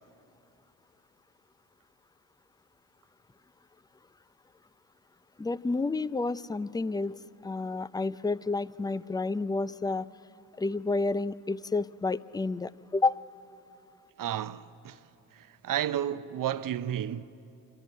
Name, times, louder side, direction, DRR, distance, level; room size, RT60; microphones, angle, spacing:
voice 1, 5.4-7.2 7.4-10.1 10.6-13.2, left 3 dB, 10° left, 0.4 m, -30 dB
voice 2, 14.2-15.0 15.4-17.2, right 11 dB, 55° right, 0.7 m, -32 dB
28.0 x 13.5 x 8.0 m
hypercardioid pair, 50°, 39 cm